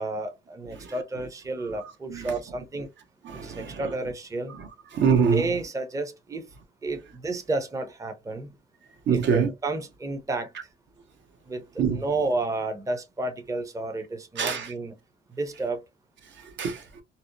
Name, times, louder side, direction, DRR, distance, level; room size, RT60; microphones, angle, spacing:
voice 1, 0.0-2.9 3.4-4.5 5.3-6.4 6.8-8.5 9.1-10.5 11.5-11.6 11.9-15.0 15.3-15.8, right 2 dB, 15° right, 0.5 m, -31 dB
voice 2, 3.2-3.9 4.6-5.5 9.1-9.5 11.8-12.0 14.4-14.7 16.4-16.8, right 6 dB, 65° right, 0.7 m, -25 dB
2.7 x 2.1 x 2.5 m
cardioid pair, 90°, 20 cm